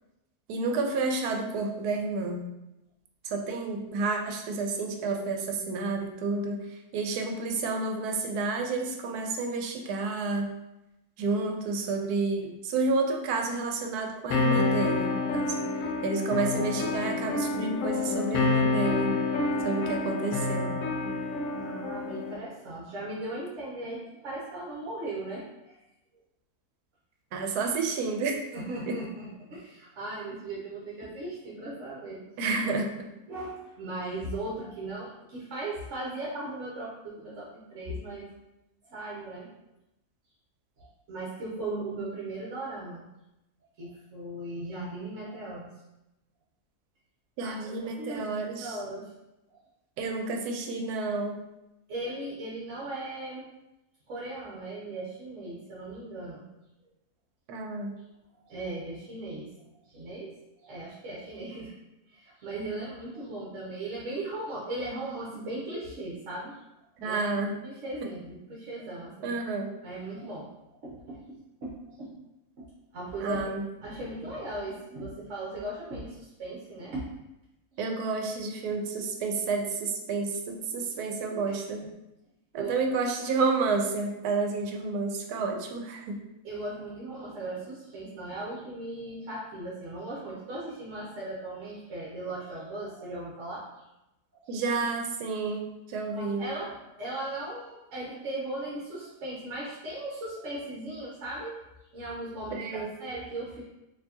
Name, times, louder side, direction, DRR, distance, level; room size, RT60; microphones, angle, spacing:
voice 1, 0.5-2.5 3.2-6.6 6.9-10.5 11.2-15.5 16.0-19.2 19.6-20.8 27.3-28.4 28.9-29.0 32.4-33.1 47.4-48.8 50.0-51.4 57.5-57.9 67.0-67.5 69.2-69.7 73.2-73.6 77.8-81.9 82.5-86.2 94.5-96.4 102.6-102.9, right 3 dB, 90° right, 3 dB, 1.1 m, -30 dB
sound 1, 14.3-22.3, left 3 dB, 65° left, 0.8 m, -28 dB
voice 2, 21.6-25.8 28.5-32.2 33.3-38.3 38.9-39.5 40.8-43.1 43.8-45.7 47.4-49.1 49.5-49.6 51.9-53.5 54.1-56.4 58.4-59.5 59.8-60.3 60.6-61.8 62.1-66.6 67.0-67.2 67.6-69.4 69.8-71.2 71.6-72.3 72.6-72.7 72.9-73.4 73.8-77.1 77.7-77.8 81.5-81.6 82.5-82.7 86.4-93.8 94.3-94.6 96.1-103.6, right 2 dB, 60° right, -5 dB, 1.0 m, -38 dB
4.3 x 2.8 x 2.8 m, 0.92 s
omnidirectional pair, 1.6 m